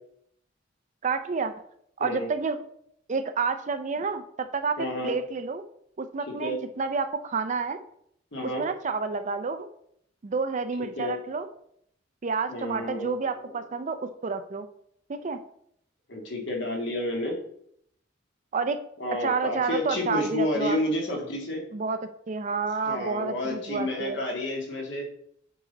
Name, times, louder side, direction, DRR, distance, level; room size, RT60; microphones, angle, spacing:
voice 1, 1.0-1.5 2.0-2.6 3.1-5.6 6.0-7.8 8.4-9.7 10.2-11.5 12.2-14.7 15.1-15.4 18.5-18.8 19.2-20.8 21.7-22.0 22.3-24.2, right 4 dB, 35° right, 10 dB, 0.4 m, -29 dB
voice 2, 4.8-5.1 6.3-6.6 8.3-8.6 10.8-11.2 12.5-13.7 16.1-17.4 19.0-21.6 22.9-25.0, left 1 dB, 60° left, 0 dB, 1.9 m, -30 dB
8.3 x 3.8 x 3.9 m, 0.69 s
head